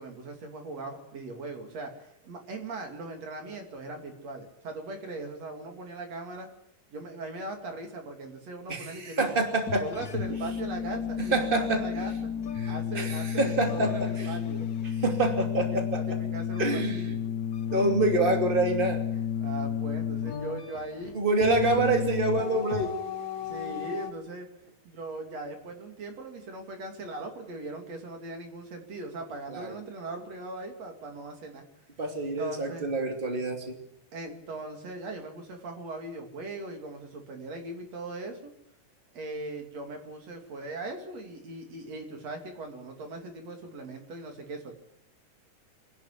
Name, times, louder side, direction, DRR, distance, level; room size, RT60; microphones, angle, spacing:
voice 1, 0.0-6.5 6.9-9.3 9.8-12.3 12.7-14.7 15.6-17.2 19.4-21.1 21.5-21.8 23.4-24.5 24.9-31.6 32.4-32.8 34.1-38.4 39.1-44.8, right 2 dB, 50° right, 4 dB, 3.7 m, -39 dB
voice 2, 8.7-9.8 11.3-11.8 12.6-14.3 15.0-16.0 16.6-17.1 17.7-19.0 21.1-22.9 29.5-29.7 32.0-33.8, right 2 dB, 15° right, 4 dB, 2.5 m, -27 dB
sound 1, 9.3-24.1, left 8 dB, 90° left, 0.8 m, -32 dB
24.5 x 11.0 x 9.9 m, 0.79 s
omnidirectional pair, 3.8 m